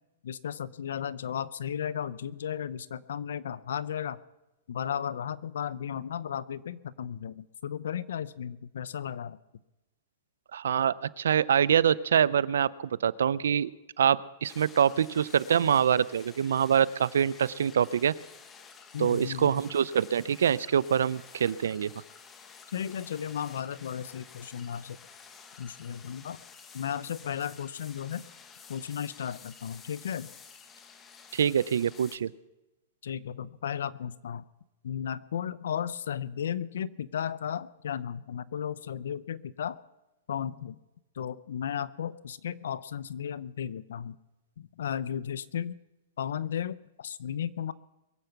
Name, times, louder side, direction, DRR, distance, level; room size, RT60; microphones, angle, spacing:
voice 1, 0.2-4.2 4.7-9.4 18.9-19.6 22.7-25.0 25.6-26.4 26.7-28.2 28.7-30.3 33.0-34.4 34.8-39.8 40.3-40.8 41.2-44.2 44.6-45.7 46.2-47.7, left 9 dB, 80° left, 18 dB, 0.7 m, -35 dB
voice 2, 10.5-13.7 14.0-18.1 19.0-21.9 31.3-32.3, right 8 dB, 90° right, 20 dB, 0.5 m, -25 dB
sound 1, 14.4-32.2, left 6 dB, 20° left, 1.3 m, -51 dB
22.5 x 8.0 x 5.9 m, 0.99 s
hypercardioid pair, 145°, 0 cm